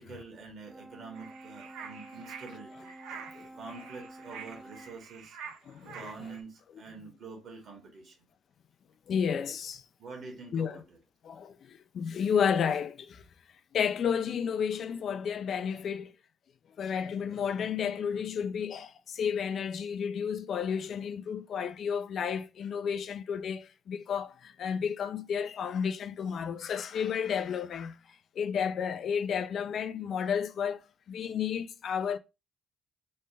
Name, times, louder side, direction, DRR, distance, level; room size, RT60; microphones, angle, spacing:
voice 1, 0.0-2.9 3.5-5.4 5.8-8.2 10.0-11.0, right 4 dB, 65° right, 1.4 m, -46 dB
Brass instrument, 0.7-5.1, right 1 dB, 25° right, 0.5 m, -50 dB
sound 1, 1.1-6.4, right 7 dB, 80° right, 0.5 m, -47 dB
voice 2, 5.7-6.1 9.1-9.8 10.5-10.8 11.2-13.2 13.7-16.1 16.8-28.0 28.4-30.8 31.1-32.2, left 7 dB, 60° left, 0.3 m, -32 dB
3.1 x 2.1 x 3.3 m
supercardioid pair, 55°, 0 cm